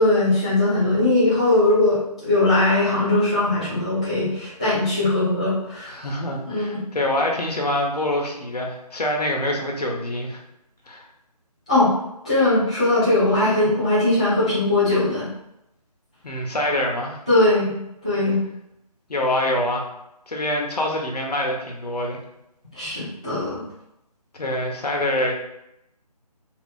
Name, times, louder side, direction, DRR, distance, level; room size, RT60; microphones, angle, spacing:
voice 1, 0.0-5.9 6.5-6.8 11.7-11.9 12.2-15.3 17.3-17.7 18.0-18.4 22.7-23.6, left 2 dB, 10° left, -13 dB, 0.4 m, -20 dB
voice 2, 5.9-10.4 10.9-11.1 16.2-17.2 19.1-19.9 20.3-22.2 24.3-25.3, left 1 dB, 75° left, 0 dB, 0.9 m, -25 dB
2.7 x 2.6 x 3.5 m, 0.83 s
figure-of-eight pair, 160°, 21 cm